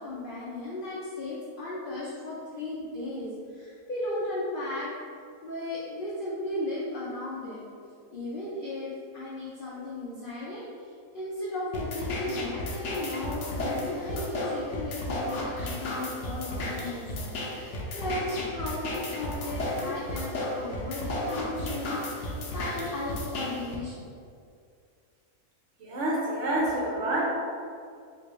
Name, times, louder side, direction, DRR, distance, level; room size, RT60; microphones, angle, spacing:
voice 1, 0.0-4.9 5.4-7.6 8.1-24.0, left 1 dB, 85° left, -8 dB, 0.4 m, -35 dB
sound 1, 11.7-23.8, left 1 dB, 70° left, 0.8 m, -33 dB
voice 2, 25.8-27.2, right 1 dB, 60° right, -4 dB, 0.8 m, -28 dB
3.5 x 2.6 x 3.0 m, 2.3 s
omnidirectional pair, 1.7 m